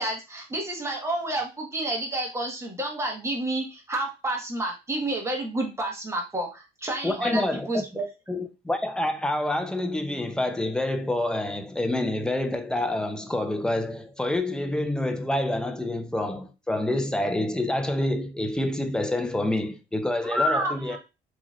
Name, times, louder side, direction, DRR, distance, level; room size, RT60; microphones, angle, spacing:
voice 1, 0.0-8.0 8.4-8.5 20.2-21.0, right 1 dB, 15° right, 1.3 m, -29 dB
voice 2, 7.0-7.9 8.3-21.0, left 1 dB, 5° left, 0.5 m, -27 dB
4.0 x 3.0 x 2.4 m
cardioid pair, 110°, 18 cm